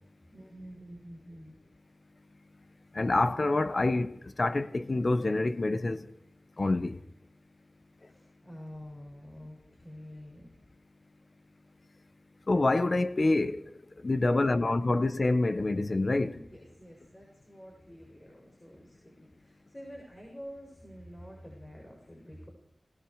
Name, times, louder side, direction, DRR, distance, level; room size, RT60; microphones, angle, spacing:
voice 1, 0.3-1.5 8.0-10.5 14.2-15.1 16.1-22.5, equal, 30° left, 7.5 m, -48 dB
voice 2, 2.9-6.1 6.6-7.0 12.5-13.7 14.0-16.4, left 2 dB, 55° left, 1.3 m, -27 dB
29.0 x 20.0 x 5.0 m
cardioid pair, 50°, 0 cm